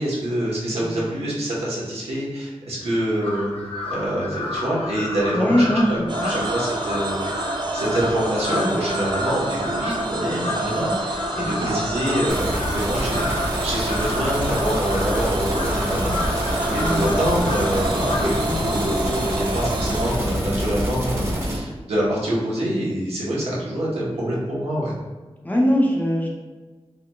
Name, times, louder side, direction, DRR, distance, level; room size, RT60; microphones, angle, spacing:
voice 1, 0.0-3.5 3.9-7.4 7.7-24.9, right 1 dB, 80° right, -6 dB, 1.0 m, -26 dB
voice 2, 0.7-1.3 5.3-6.4 11.4-11.7 16.8-17.0 25.4-26.3, equal, 15° left, -2 dB, 0.6 m, -22 dB
Crow, 3.2-18.5, left 2 dB, 75° left, 0.5 m, -31 dB
sound 1, 6.1-20.1, right 2 dB, 50° right, 0.4 m, -28 dB
sound 2, 12.3-21.6, equal, 25° right, 0.9 m, -27 dB
3.8 x 3.0 x 2.3 m, 1.3 s
wide cardioid pair, 100°, 10 cm